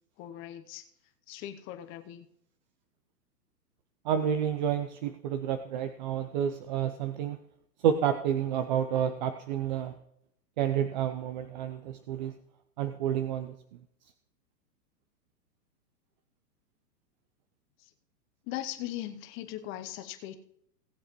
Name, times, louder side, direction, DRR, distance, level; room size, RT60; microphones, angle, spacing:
voice 1, 0.2-0.9 1.3-2.3 17.8-17.9 18.4-20.4, left 13 dB, 25° left, 9 dB, 0.8 m, -39 dB
voice 2, 4.0-7.4 7.8-9.9 10.6-12.3 12.8-13.5, right 9 dB, 30° right, 9 dB, 0.5 m, -29 dB
18.0 x 7.7 x 3.1 m, 0.72 s
hypercardioid pair, 125°, 48 cm